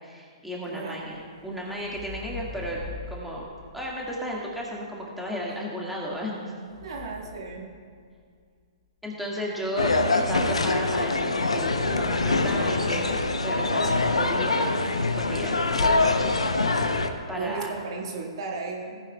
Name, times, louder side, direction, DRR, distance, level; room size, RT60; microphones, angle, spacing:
voice 1, 0.0-2.8 3.1-6.5 9.0-13.1 13.4-14.7 15.2-17.0 17.3-17.7, equal, ahead, -5 dB, 1.9 m, -34 dB
voice 2, 0.7-1.0 6.8-7.7 17.3-19.0, right 4 dB, 60° right, 0 dB, 1.8 m, -34 dB
sound 1, 1.0-5.1 6.0-8.4 11.7-12.5 12.9-13.4, left 4 dB, 40° left, 1.1 m, -44 dB
sound 2, 9.8-17.1, left 3 dB, 90° left, 0.8 m, -24 dB
17.0 x 10.0 x 2.3 m, 2.1 s
hypercardioid pair, 125°, 3 cm